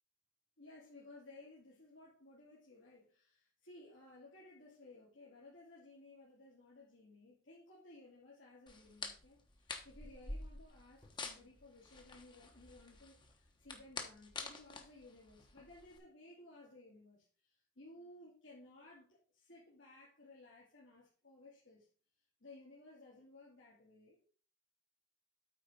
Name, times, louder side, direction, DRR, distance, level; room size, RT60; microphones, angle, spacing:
voice 1, 0.6-21.9 22.4-24.3, left 2 dB, 75° left, -6 dB, 2.5 m, -58 dB
sound 1, 8.7-16.0, left 3 dB, 25° left, 1.1 m, -48 dB
8.9 x 4.4 x 5.2 m, 0.40 s
head